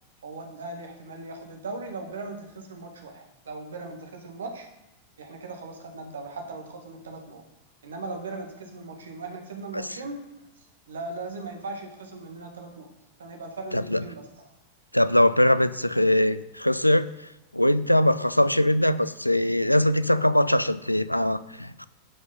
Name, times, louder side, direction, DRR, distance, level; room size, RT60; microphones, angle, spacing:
voice 1, 0.2-4.7 5.2-7.4 7.8-10.5 10.9-12.9 13.2-14.5, right 3 dB, 65° right, 4 dB, 1.8 m, -38 dB
voice 2, 14.9-17.1 17.5-21.9, left 1 dB, 90° left, 15 dB, 0.4 m, -21 dB
11.0 x 5.4 x 5.5 m, 0.92 s
figure-of-eight pair, 90°, 0 cm